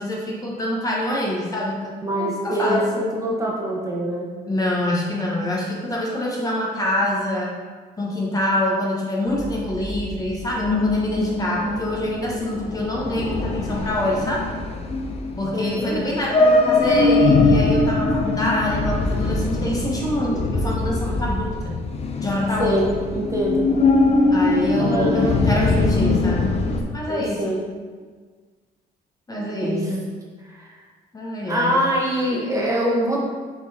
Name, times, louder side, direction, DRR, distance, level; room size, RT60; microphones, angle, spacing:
voice 1, 0.0-2.9 4.5-7.6 8.0-14.4 15.4-21.8 22.2-22.8 24.3-26.6 26.9-27.6 29.3-30.0 31.1-31.8, left 1 dB, 20° left, -3 dB, 1.2 m, -26 dB
voice 2, 2.0-4.4 15.5-16.2 22.6-23.7 24.7-26.2 27.1-27.6 29.3-29.9 30.5-30.8 31.4-33.2, equal, 20° right, -3 dB, 1.3 m, -24 dB
sound 1, 9.3-26.8, left 3 dB, 40° left, 0.7 m, -22 dB
5.9 x 4.0 x 4.3 m, 1.5 s
cardioid pair, 110°, 17 cm